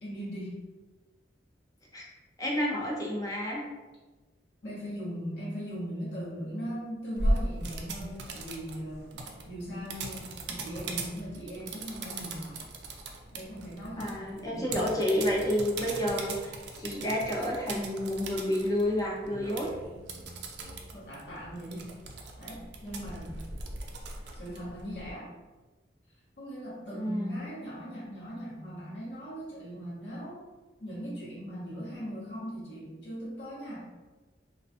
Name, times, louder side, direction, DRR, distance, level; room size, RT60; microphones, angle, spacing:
voice 1, 0.0-0.6 4.6-12.6 13.3-14.9 20.9-21.9 22.4-23.4 24.3-25.3 26.4-30.4 30.8-33.8, equal, 85° left, -8 dB, 0.9 m, -39 dB
voice 2, 2.4-3.6 14.0-19.7 26.9-27.4, equal, 20° left, -2 dB, 0.4 m, -30 dB
sound 1, 7.2-25.1, right 2 dB, 70° right, 0.3 m, -38 dB
2.4 x 2.1 x 2.6 m, 1.2 s
head